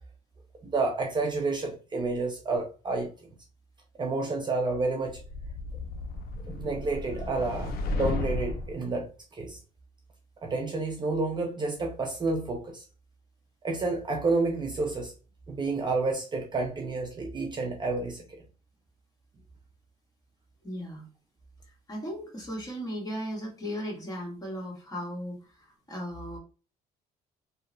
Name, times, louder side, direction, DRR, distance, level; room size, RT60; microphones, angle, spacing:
voice 1, 0.6-3.1 4.0-5.2 6.5-9.1 9.3-9.6 10.4-12.8 13.6-15.1 15.5-18.2, right 3 dB, 25° right, 0.5 m, -30 dB
sound 1, 5.1-8.8, left 3 dB, 65° left, 0.5 m, -34 dB
voice 2, 20.6-21.1 21.9-26.4, equal, 20° left, 1.2 m, -36 dB
2.8 x 2.0 x 2.5 m
cardioid pair, 110°, 17 cm